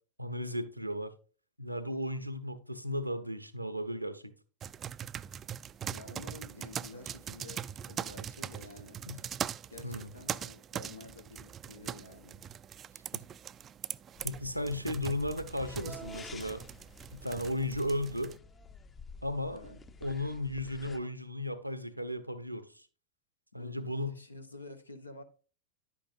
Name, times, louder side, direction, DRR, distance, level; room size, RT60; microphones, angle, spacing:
voice 1, 0.2-1.1 1.6-4.3 9.1-9.2 9.8-10.1 13.1-13.2 14.2-16.6 17.1-18.4 19.2-19.6 20.0-22.8 23.5-24.1, left 1 dB, 90° right, 0.8 m, -35 dB
sound 1, 4.6-18.4, right 9 dB, 25° right, 0.3 m, -42 dB
voice 2, 5.9-9.0 9.6-12.4 19.5-19.8 23.5-25.2, left 2 dB, 80° left, 1.0 m, -50 dB
sound 2, 14.1-21.0, left 4 dB, 20° left, 0.6 m, -51 dB
10.5 x 8.5 x 2.6 m
figure-of-eight pair, 90°, 0 cm